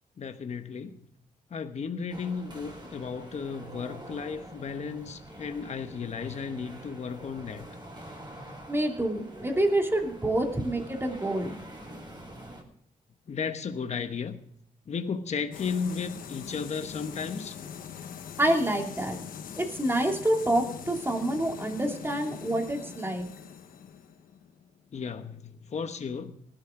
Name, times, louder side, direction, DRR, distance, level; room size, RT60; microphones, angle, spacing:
voice 1, 0.2-1.1 1.5-7.7 13.3-14.4 14.9-17.6 24.9-26.4, left 5 dB, 55° left, 1.2 m, -34 dB
sound 1, 2.1-12.6, right 1 dB, 30° right, 4.9 m, -46 dB
voice 2, 8.7-11.6 18.4-19.2 19.6-23.3, right 1 dB, 15° right, 2.8 m, -27 dB
sound 2, 15.5-25.1, left 7 dB, 90° left, 1.2 m, -43 dB
18.5 x 12.0 x 3.8 m
cardioid pair, 80°, 14 cm